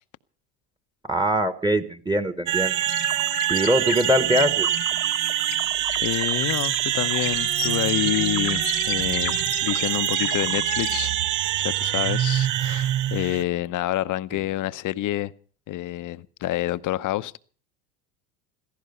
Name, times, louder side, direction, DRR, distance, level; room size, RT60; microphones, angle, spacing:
voice 1, 1.1-2.8 3.5-4.7, equal, 10° right, 1.2 m, -22 dB
sound 1, 2.5-13.4, right 13 dB, 40° right, 0.8 m, -25 dB
sound 2, 2.8-10.9, left 15 dB, 85° left, 1.4 m, -35 dB
voice 2, 6.0-11.1 11.6-15.3 15.7-17.4, left 15 dB, 40° left, 0.8 m, -28 dB
16.5 x 14.5 x 5.4 m
hypercardioid pair, 95°, 47 cm